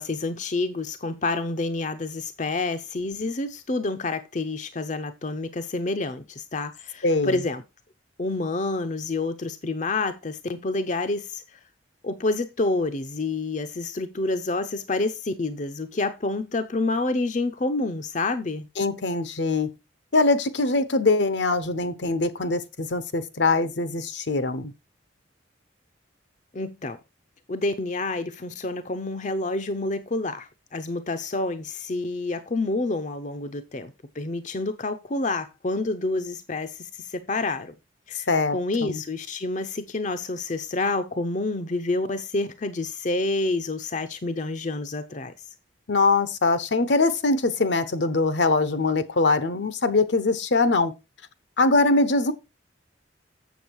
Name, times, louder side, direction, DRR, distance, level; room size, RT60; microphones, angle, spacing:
voice 1, 0.0-7.6 8.2-11.6 12.0-18.7 26.5-27.0 27.5-37.7 38.1-45.3, left 2 dB, 40° left, 0.6 m, -28 dB
voice 2, 7.0-7.4 18.8-19.7 20.1-24.7 38.3-38.6 38.8-39.0 45.9-50.9 51.6-52.3, left 3 dB, 65° left, 0.9 m, -22 dB
7.2 x 7.2 x 4.6 m
head